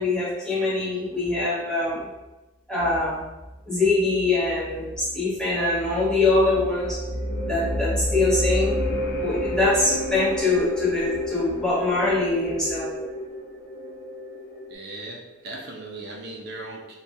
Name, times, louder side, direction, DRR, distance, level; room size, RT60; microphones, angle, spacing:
voice 1, 0.0-2.1 2.7-3.2 3.7-7.0 7.5-8.7 9.2-12.9, left 2 dB, 5° left, -8 dB, 0.8 m, -23 dB
sound 1, 4.5-14.7, left 1 dB, 65° left, 0.6 m, -30 dB
voice 2, 14.7-16.9, right 2 dB, 55° right, -2 dB, 0.5 m, -38 dB
3.7 x 2.3 x 2.6 m, 1.1 s
head